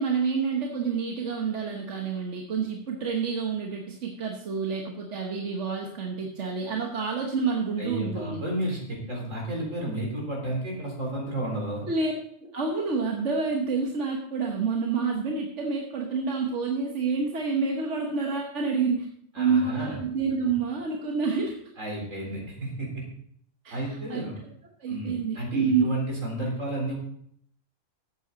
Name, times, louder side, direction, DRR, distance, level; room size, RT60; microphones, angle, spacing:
voice 1, 0.0-8.4 11.9-12.1 12.4-19.1 19.4-21.6 23.6-24.2 24.8-25.8, right 5 dB, 65° right, 1 dB, 1.5 m, -28 dB
voice 2, 7.8-11.9 19.3-19.9 21.8-23.0 23.7-24.4 24.9-26.9, right 1 dB, 85° right, -1 dB, 4.3 m, -32 dB
13.5 x 8.3 x 3.9 m, 0.66 s
omnidirectional pair, 1.3 m